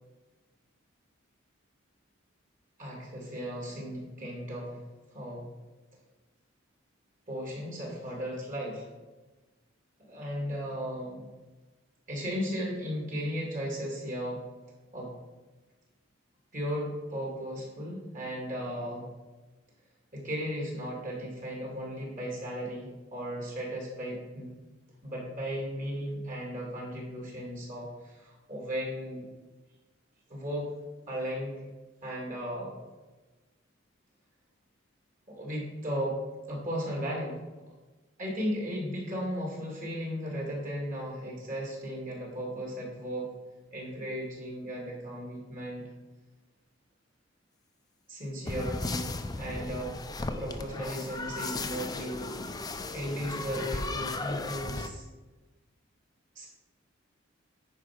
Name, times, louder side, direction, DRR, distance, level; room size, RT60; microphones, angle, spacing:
voice 1, 2.8-4.8 5.1-5.5 7.3-8.9 10.0-11.2 12.1-14.4 14.9-15.1 16.5-19.1 20.1-24.5 25.0-29.3 30.3-30.7 31.1-31.7 32.0-32.7 35.3-36.2 36.5-37.4 38.2-43.3 43.7-45.9 48.1-52.3 52.9-55.0 56.4-56.5, equal, 40° right, -2 dB, 2.5 m, -36 dB
sound 1, 48.5-54.9, left 3 dB, 20° left, 0.5 m, -35 dB
9.6 x 4.8 x 6.0 m, 1.2 s
head